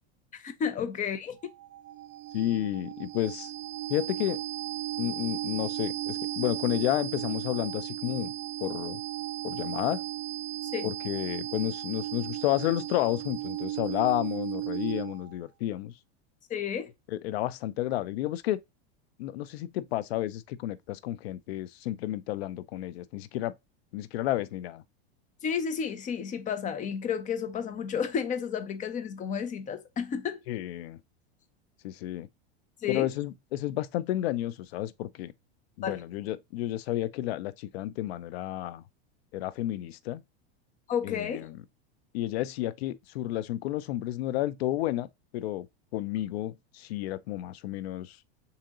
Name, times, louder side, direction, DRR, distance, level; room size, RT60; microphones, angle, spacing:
voice 1, 0.3-1.4 10.7-10.9 16.5-16.9 25.4-30.4 32.8-33.1 35.8-36.0 40.9-41.5, left 7 dB, 25° left, 0.6 m, -32 dB
sound 1, 1.4-15.3, right 14 dB, 45° right, 0.5 m, -36 dB
voice 2, 2.3-3.5 3.9-4.4 5.0-8.3 8.6-9.0 9.4-10.0 10.8-15.9 17.1-18.6 19.2-23.5 23.9-24.8 30.5-31.0 31.8-32.3 32.9-35.3 35.8-38.8 39.3-40.2 41.0-41.6 42.1-45.1 45.3-45.7 45.9-48.2, left 14 dB, 75° left, 0.5 m, -31 dB
3.8 x 2.9 x 3.6 m
supercardioid pair, 125°, 32 cm